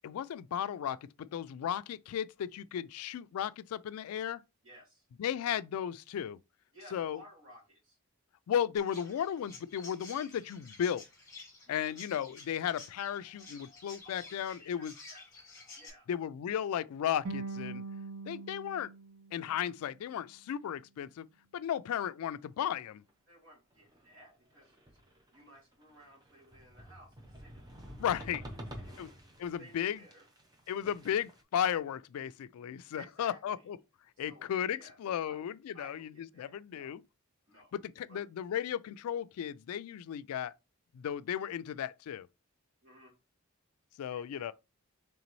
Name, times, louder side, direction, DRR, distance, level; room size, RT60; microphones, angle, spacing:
voice 1, 0.0-4.4 5.2-6.4 6.9-7.2 8.5-11.0 11.7-14.9 16.1-17.8 18.3-18.9 19.3-21.3 21.5-23.0 28.0-28.4 29.0-29.1 29.4-30.0 30.7-33.8 34.2-36.1 36.4-37.0 37.7-40.5 40.9-42.3 44.0-44.5, left 9 dB, 80° left, 0.3 m, -35 dB
voice 2, 4.6-5.1 6.7-8.0 11.7-11.9 14.0-15.2 15.8-16.1 18.6-18.8 23.3-25.0 25.3-29.1 29.6-30.3 32.9-33.6 34.2-35.0 35.2-35.4 35.7-36.9 37.5-37.7 38.1-38.3 42.8-43.2 44.1-44.5, right 1 dB, 65° right, 2.1 m, -57 dB
Chirp tweet, 8.8-15.9, left 3 dB, 15° left, 1.4 m, -52 dB
sound 1, 17.2-20.4, right 3 dB, 90° right, 0.6 m, -43 dB
sound 2, 23.9-24.2 24.6-25.6 25.9-31.4, equal, 20° right, 0.6 m, -48 dB
3.9 x 3.4 x 3.0 m
head